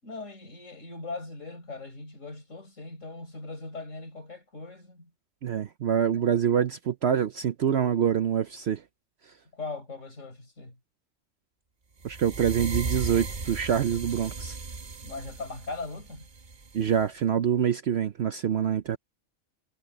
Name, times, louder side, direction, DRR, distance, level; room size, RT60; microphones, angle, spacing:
voice 1, 0.0-5.1 9.5-10.8 15.0-16.3, left 3 dB, 70° left, 5.4 m, -40 dB
voice 2, 5.4-8.8 12.0-14.6 16.7-19.0, right 8 dB, 60° right, 0.9 m, -25 dB
sound 1, 12.0-17.1, right 3 dB, 40° right, 1.2 m, -36 dB
omnidirectional pair, 1.4 m